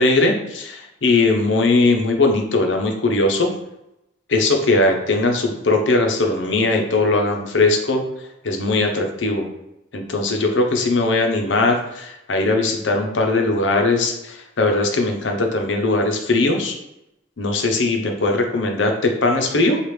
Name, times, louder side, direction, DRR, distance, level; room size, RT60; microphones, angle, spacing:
voice 1, 0.0-3.5 4.3-8.0 8.4-9.5 9.9-16.7 17.4-19.8, left 2 dB, 80° left, 3 dB, 0.7 m, -19 dB
4.9 x 2.4 x 3.1 m, 0.88 s
head